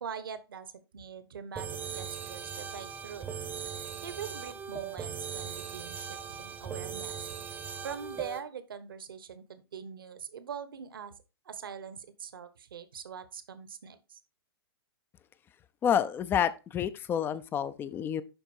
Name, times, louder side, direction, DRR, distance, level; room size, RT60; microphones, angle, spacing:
voice 1, 0.0-3.2 4.0-7.3 7.8-11.2 11.4-14.2, right 7 dB, 60° right, 1.2 m, -43 dB
sound 1, 1.6-8.4, right 7 dB, 15° right, 0.9 m, -39 dB
voice 2, 15.8-18.2, left 9 dB, 15° left, 0.6 m, -29 dB
11.0 x 4.5 x 4.4 m
figure-of-eight pair, 115°, 13 cm